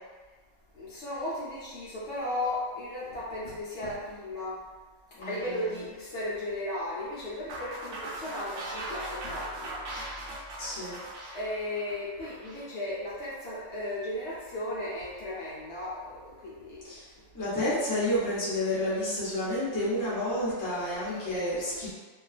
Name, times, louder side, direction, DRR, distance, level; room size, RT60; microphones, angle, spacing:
voice 1, 0.7-4.6 5.2-9.8 11.3-16.8 20.9-21.9, left 1 dB, 65° left, -8 dB, 0.8 m, -35 dB
voice 2, 5.1-5.8 10.6-11.0 16.8-17.1 17.3-21.9, left 1 dB, 20° left, -9 dB, 0.5 m, -30 dB
sound 1, 7.5-12.6, right 1 dB, 70° right, 0.9 m, -39 dB
2.4 x 2.3 x 2.3 m, 1.3 s
omnidirectional pair, 1.4 m